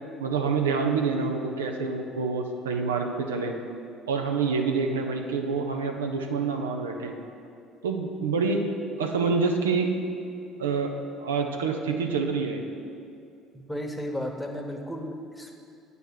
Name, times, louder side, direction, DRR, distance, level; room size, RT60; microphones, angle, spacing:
voice 1, 0.2-3.6 4.1-7.1 7.8-8.6 9.0-9.9 10.6-10.9 11.2-12.6, right 4 dB, 90° right, 3 dB, 0.5 m, -27 dB
voice 2, 13.5-15.5, equal, 5° left, 2 dB, 1.0 m, -34 dB
8.6 x 3.4 x 6.3 m, 2.4 s
hypercardioid pair, 60°, 0 cm